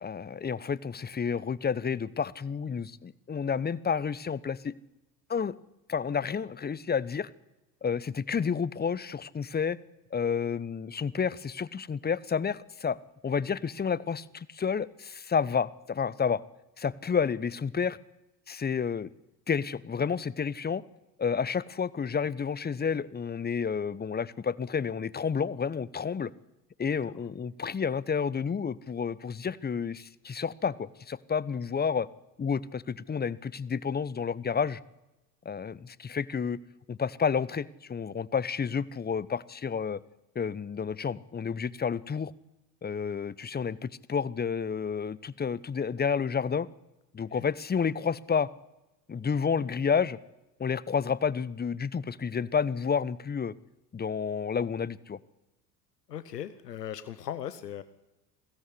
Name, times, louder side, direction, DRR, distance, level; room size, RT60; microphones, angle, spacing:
voice 1, 0.0-4.7 5.3-5.6 5.9-7.3 7.8-9.8 10.1-13.0 13.2-16.4 16.8-18.0 18.5-19.1 19.5-20.8 21.2-26.3 26.8-32.1 32.4-34.8 35.4-36.6 36.9-40.0 40.3-42.3 42.8-46.7 47.1-48.5 49.1-50.2 50.6-53.5 53.9-55.2, left 6 dB, 20° left, 20 dB, 1.0 m, -30 dB
voice 2, 56.1-57.8, left 10 dB, 85° left, 14 dB, 1.0 m, -38 dB
22.0 x 16.5 x 10.0 m, 0.98 s
figure-of-eight pair, 60°, 47 cm